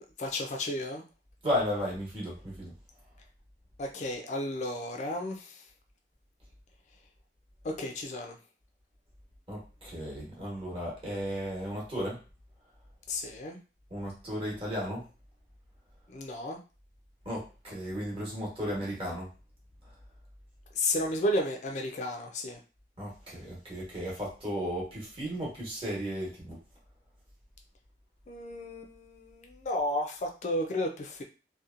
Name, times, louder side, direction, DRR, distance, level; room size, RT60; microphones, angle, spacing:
voice 1, 0.2-1.0 3.8-5.5 7.6-8.4 13.1-13.6 16.1-16.6 20.8-22.6 28.3-31.2, left 1 dB, 40° left, 3 dB, 0.3 m, -33 dB
voice 2, 1.4-2.7 9.5-12.2 13.9-15.0 17.2-19.3 23.0-26.6, equal, 30° right, -5 dB, 1.0 m, -34 dB
2.7 x 2.2 x 2.4 m, 0.33 s
head